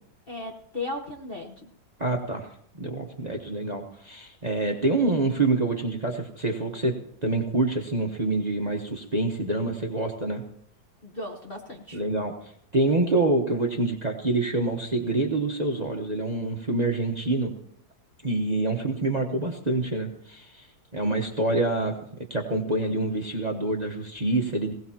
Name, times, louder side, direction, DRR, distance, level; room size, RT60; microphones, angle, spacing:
voice 1, 0.3-1.7 11.0-12.0, left 2 dB, 35° left, 1 dB, 1.1 m, -36 dB
voice 2, 2.0-2.5 2.8-6.9 7.2-10.4 11.9-17.5 18.2-20.7 20.9-22.0 22.3-24.7, right 2 dB, 25° right, 2 dB, 1.0 m, -26 dB
20.0 x 17.5 x 2.9 m, 0.69 s
omnidirectional pair, 2.1 m